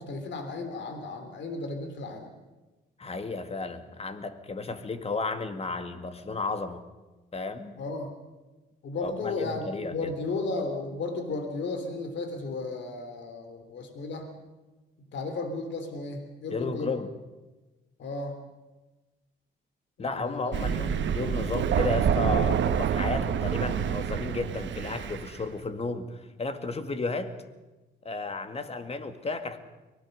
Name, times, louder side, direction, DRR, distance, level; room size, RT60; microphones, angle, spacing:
voice 1, 0.0-2.3 7.8-8.1 8.8-14.3 15.0-16.9 18.0-18.4 20.0-20.9 21.2-21.3, left 3 dB, 65° left, 7 dB, 3.3 m, -34 dB
voice 2, 3.0-6.8 7.3-7.7 9.0-10.1 16.5-17.1 20.0-27.3 28.0-29.6, left 3 dB, 30° left, 9 dB, 2.1 m, -33 dB
Thunder, 20.5-25.3, right 8 dB, 65° right, 1.3 m, -27 dB
24.0 x 18.5 x 6.6 m, 1.1 s
cardioid pair, 90°, 20 cm